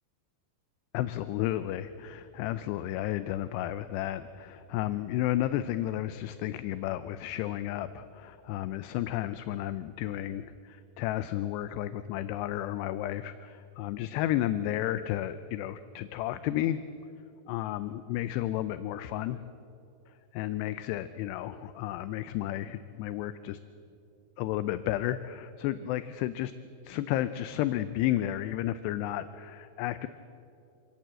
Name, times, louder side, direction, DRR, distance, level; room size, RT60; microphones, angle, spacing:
voice 1, 0.9-16.8 17.5-19.4 20.3-23.6 24.4-26.5 26.8-30.1, left 13 dB, 80° left, 13 dB, 2.6 m, -32 dB
26.0 x 17.5 x 7.7 m, 2.8 s
omnidirectional pair, 5.2 m